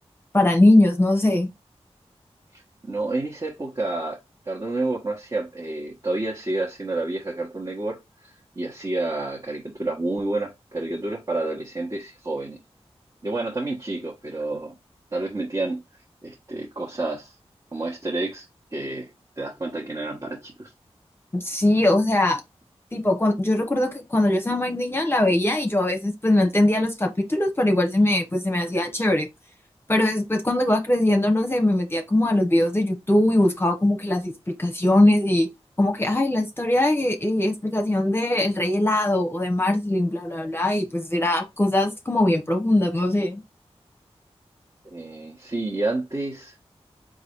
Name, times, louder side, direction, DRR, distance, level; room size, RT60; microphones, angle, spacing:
voice 1, 0.3-1.5 21.3-22.4 22.9-29.3 29.9-35.5 35.8-43.4, left 1 dB, 20° left, 0.9 m, -21 dB
voice 2, 2.5-4.2 4.4-12.6 13.2-14.7 15.1-15.8 16.2-17.3 17.7-18.5 18.7-19.1 19.4-20.7 44.8-46.5, right 2 dB, 35° right, 1.3 m, -29 dB
3.9 x 2.6 x 4.5 m
cardioid pair, 50°, 11 cm